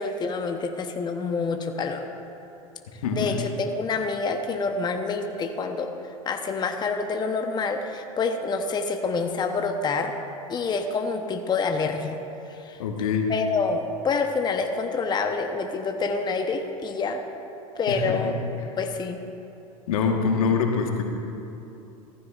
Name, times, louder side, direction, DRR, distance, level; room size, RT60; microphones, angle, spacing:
voice 1, 0.0-2.0 3.1-5.9 6.2-10.1 10.5-12.2 12.5-12.8 13.3-17.2 17.8-18.4 18.8-19.2, left 4 dB, 25° left, 5 dB, 0.8 m, -27 dB
voice 2, 3.0-3.5 12.8-13.3 17.9-18.3 19.9-21.0, left 5 dB, 80° left, 3 dB, 1.4 m, -24 dB
15.5 x 14.5 x 2.4 m, 2.8 s
hypercardioid pair, 95°, 18 cm